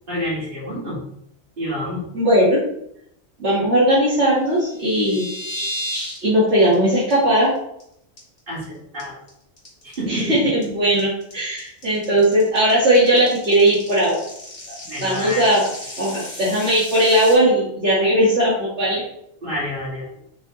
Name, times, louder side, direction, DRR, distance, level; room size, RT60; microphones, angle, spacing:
voice 1, 0.1-1.0 1.6-2.0 8.5-9.2 9.8-10.5 14.9-15.5 19.4-20.1, equal, 45° right, -6 dB, 3.3 m, -28 dB
voice 2, 2.1-2.6 3.4-5.3 6.2-7.5 10.1-14.2 15.0-15.6 16.0-19.0, right 1 dB, 60° right, -9 dB, 2.7 m, -18 dB
sound 1, 4.5-6.2 6.5-6.7 7.1-7.2 7.6-7.8 8.2-8.6 9.0-17.3, equal, 45° left, 3.0 m, -34 dB
7.0 x 5.9 x 4.1 m, 0.74 s
omnidirectional pair, 1.3 m